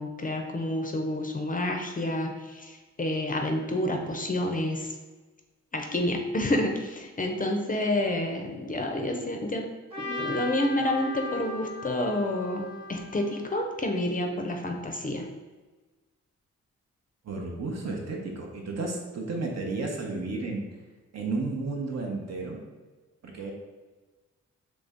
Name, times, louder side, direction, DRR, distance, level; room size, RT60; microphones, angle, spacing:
voice 1, 0.0-5.0 5.7-9.6 10.0-15.3, left 1 dB, 30° left, 3 dB, 0.4 m, -29 dB
Trumpet, 9.9-14.1, left 2 dB, 20° right, 1.0 m, -38 dB
voice 2, 17.2-20.6 21.1-22.6 23.2-23.5, right 3 dB, 65° right, 0 dB, 0.8 m, -32 dB
3.2 x 2.6 x 3.5 m, 1.3 s
cardioid pair, 80°, 29 cm